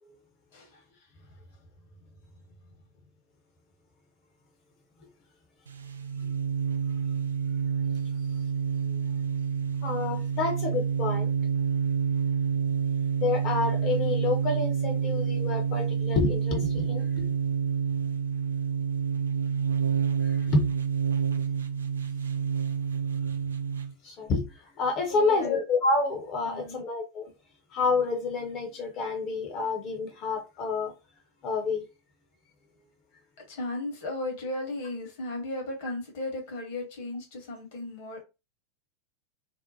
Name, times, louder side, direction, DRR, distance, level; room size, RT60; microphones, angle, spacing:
voice 1, 0.5-2.2 2.6-2.7 8.1-8.5 23.0-23.2 25.1-25.6 26.4-26.8 33.4-38.2, left 2 dB, 50° left, 1.0 m, -37 dB
sound 1, 5.7-23.9, right 6 dB, 70° right, 0.3 m, -28 dB
voice 2, 9.8-11.3 13.1-17.3 20.2-20.6 24.0-27.3 27.7-30.9 31.4-31.8, left 3 dB, 35° left, 0.7 m, -28 dB
2.6 x 2.1 x 2.7 m
figure-of-eight pair, 90°, 0 cm